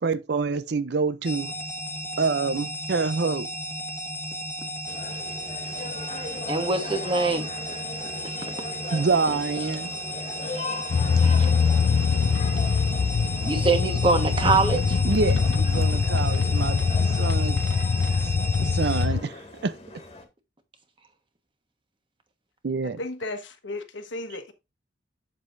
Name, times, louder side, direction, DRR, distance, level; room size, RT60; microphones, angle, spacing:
voice 1, 0.0-1.5 2.2-3.5 8.9-9.9 15.0-16.8 17.2-17.6 18.6-19.8 22.6-23.0, right 4 dB, 60° right, 0.5 m, -26 dB
sound 1, 1.2-19.1, equal, 15° left, 1.5 m, -34 dB
sound 2, 4.9-20.2, left 2 dB, 30° left, 1.7 m, -40 dB
voice 2, 6.5-7.5 13.4-15.0, right 3 dB, 25° right, 1.3 m, -23 dB
sound 3, 10.9-19.2, left 5 dB, 60° left, 0.4 m, -23 dB
voice 3, 23.0-24.5, left 2 dB, 80° left, 1.3 m, -34 dB
7.8 x 7.5 x 2.6 m
head